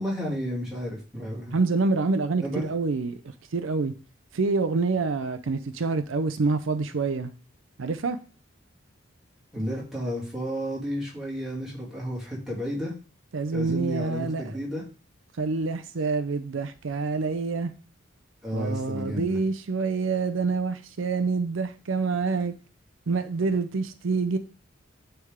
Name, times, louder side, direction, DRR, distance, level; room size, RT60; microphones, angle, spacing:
voice 1, 0.0-1.6 2.4-2.7 9.5-12.9 13.5-14.8 18.4-19.4, equal, ahead, 2.5 m, -32 dB
voice 2, 1.5-3.2 3.5-3.9 4.3-7.3 7.8-8.2 13.3-14.6 15.4-17.7 18.5-22.5 23.1-24.4, right 4 dB, 80° right, 0.5 m, -27 dB
9.4 x 3.5 x 3.6 m
head